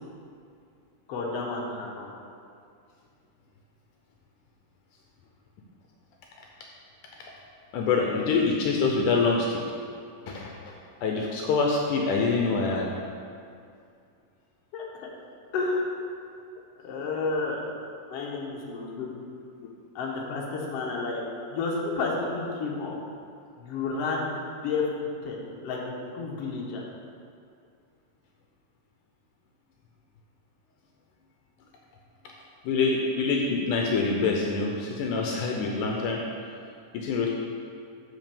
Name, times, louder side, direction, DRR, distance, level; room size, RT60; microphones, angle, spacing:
voice 1, 1.1-2.1 14.7-14.8 15.5-15.9 16.8-17.6 18.1-19.1 19.9-21.2 21.5-22.9 23.6-24.3 24.6-24.9 25.2-25.4 25.6-25.8 26.1-26.8, left 4 dB, 60° left, -2 dB, 1.7 m, -30 dB
voice 2, 7.7-9.6 10.3-10.5 11.0-12.9 19.0-19.1 19.6-19.7 32.6-36.2 36.9-37.3, left 4 dB, 75° left, 0 dB, 2.0 m, -25 dB
6.4 x 5.2 x 6.8 m, 2.4 s
omnidirectional pair, 4.0 m